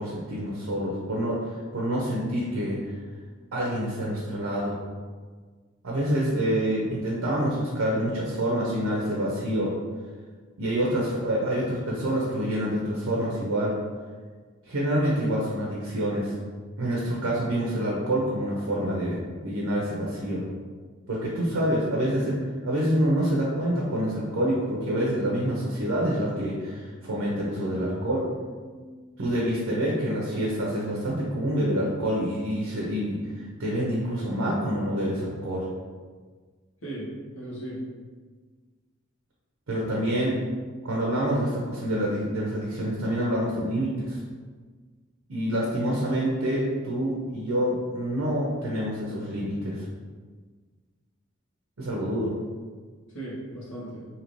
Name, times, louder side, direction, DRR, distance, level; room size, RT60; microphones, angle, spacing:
voice 1, 0.0-2.9 3.5-4.8 5.8-9.7 10.6-13.8 14.7-16.3 16.8-20.4 21.1-22.4 22.6-28.3 29.2-35.7 39.7-40.4 40.8-44.2 45.3-49.8 51.8-52.3, equal, 85° right, -4 dB, 0.6 m, -27 dB
voice 2, 36.8-37.8 53.1-54.1, right 1 dB, 70° left, -7 dB, 1.1 m, -37 dB
2.8 x 2.6 x 3.0 m, 1.5 s
head